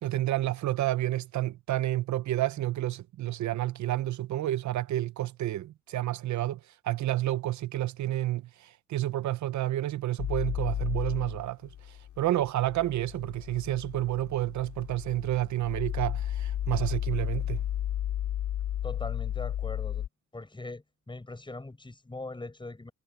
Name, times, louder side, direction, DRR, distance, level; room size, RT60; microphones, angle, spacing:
voice 1, 0.0-17.6, right 14 dB, 70° right, 0.8 m, -30 dB
sound 1, 10.2-20.1, left 11 dB, 75° left, 3.3 m, -33 dB
voice 2, 18.8-20.1 20.3-22.9, left 2 dB, 15° left, 6.2 m, -41 dB
cardioid pair, 90°, 30 cm